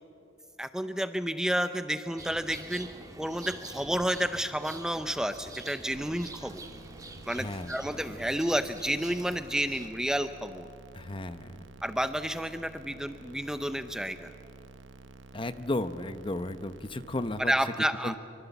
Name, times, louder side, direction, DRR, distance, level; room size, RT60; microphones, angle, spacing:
voice 1, 0.6-2.9 3.2-6.6 7.3-10.7 11.8-14.3 17.4-18.2, equal, 5° right, 9 dB, 0.5 m, -30 dB
sound 1, 2.2-9.9, right 2 dB, 20° right, 1.7 m, -47 dB
sound 2, 5.9-17.4, right 3 dB, 85° right, 0.9 m, -50 dB
voice 2, 7.3-7.8 10.9-11.6 15.3-17.5 18.0-18.2, left 2 dB, 30° left, 11 dB, 0.8 m, -34 dB
25.0 x 25.0 x 7.1 m, 2.7 s
head